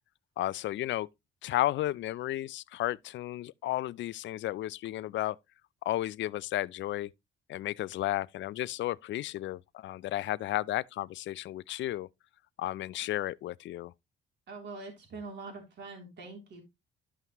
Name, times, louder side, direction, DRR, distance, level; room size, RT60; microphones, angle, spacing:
voice 1, 0.4-1.1 1.4-5.4 5.9-7.1 7.5-12.1 12.6-13.9, left 14 dB, 70° left, 0.4 m, -33 dB
voice 2, 14.5-16.6, right 3 dB, 65° right, 3.3 m, -44 dB
12.5 x 5.8 x 3.0 m
cardioid pair, 90°, 20 cm